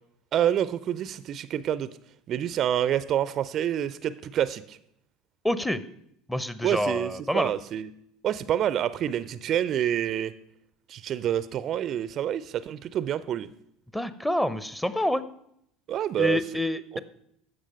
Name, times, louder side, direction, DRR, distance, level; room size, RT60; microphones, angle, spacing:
voice 1, 0.3-1.9 2.3-4.8 6.6-7.9 8.2-10.3 10.9-13.5 15.9-16.4, right 10 dB, 45° right, 16 dB, 0.4 m, -27 dB
voice 2, 5.4-5.8 6.3-7.5 13.9-15.2 16.2-17.0, left 1 dB, 5° left, 14 dB, 0.7 m, -27 dB
14.5 x 5.0 x 5.4 m, 0.73 s
figure-of-eight pair, 65°, 0 cm